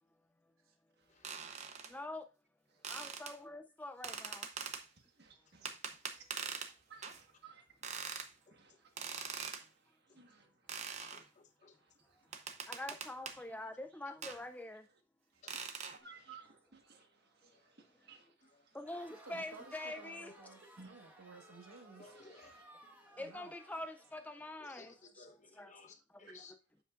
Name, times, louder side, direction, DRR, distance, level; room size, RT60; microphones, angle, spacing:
sound 1, 1.2-1.9 2.8-3.3 4.0-4.8 5.6-6.7 7.0-7.2 7.8-8.3 9.0-9.6 10.7-11.2 12.3-13.4 14.2-14.4 15.5-16.0, right 6 dB, 30° right, 0.7 m, -43 dB
voice 1, 1.9-2.3 2.9-4.5 12.7-14.9 18.7-20.4 23.2-25.2 25.5-25.7 26.1-26.4, left 1 dB, 5° left, 0.3 m, -45 dB
voice 2, 5.2-5.8 6.1-6.3 6.9-7.7 8.5-9.5 10.1-10.5 11.8-11.9 12.3-12.6 15.9-18.3 18.6-18.8 20.8-20.9 22.0-22.6, right 6 dB, 50° right, 1.4 m, -58 dB
voice 3, 8.0-8.6 9.1-9.3 10.1-10.2 11.0-11.8 15.4-15.6 16.3-16.4 17.4-17.6 18.4-18.7 22.0-22.7 24.6-26.5, left 4 dB, 35° left, 0.9 m, -59 dB
Crowd, 18.8-25.0, right 1 dB, 10° right, 1.3 m, -60 dB
voice 4, 19.3-22.1 23.1-23.5, right 3 dB, 80° right, 1.4 m, -55 dB
8.3 x 7.4 x 2.4 m
head